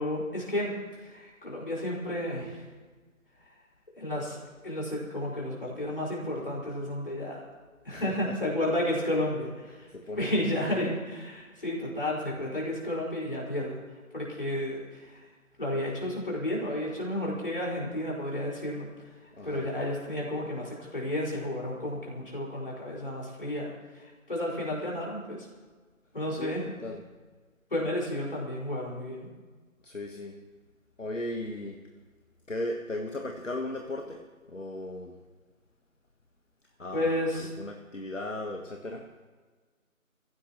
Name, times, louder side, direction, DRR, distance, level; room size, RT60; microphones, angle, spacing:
voice 1, 0.0-2.6 4.0-7.4 7.9-9.9 10.1-13.7 14.1-15.3 15.6-18.9 19.4-25.5 26.1-26.6 27.7-29.3 36.9-37.5, left 1 dB, 40° left, -4 dB, 5.1 m, -32 dB
voice 2, 7.9-8.4 9.9-10.3 10.6-10.9 19.3-19.7 26.4-27.0 29.8-30.4 31.0-31.8 32.5-34.2 34.5-35.2 36.8-39.1, left 1 dB, 60° left, 3 dB, 1.4 m, -37 dB
25.5 x 16.0 x 3.0 m, 1.4 s
figure-of-eight pair, 170°, 41 cm